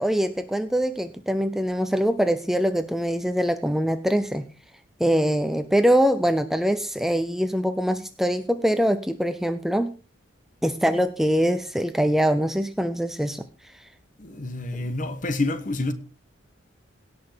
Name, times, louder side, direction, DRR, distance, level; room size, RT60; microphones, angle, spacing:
voice 1, 0.0-4.5 5.0-9.9 10.6-13.4 14.7-14.8, equal, ahead, 0.6 m, -23 dB
voice 2, 14.2-15.9, left 2 dB, 40° left, 1.3 m, -28 dB
17.5 x 6.0 x 5.3 m
head